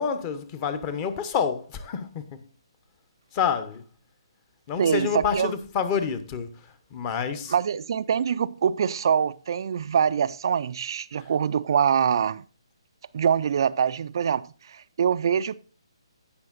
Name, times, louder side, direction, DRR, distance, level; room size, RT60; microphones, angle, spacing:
voice 1, 0.0-2.4 3.3-3.8 4.7-6.5 6.9-7.5 11.2-11.3, left 7 dB, 25° left, 0.9 m, -28 dB
voice 2, 4.8-5.5 7.5-12.4 13.1-15.6, right 7 dB, 50° right, 0.3 m, -24 dB
16.5 x 5.7 x 2.5 m
figure-of-eight pair, 145°, 3 cm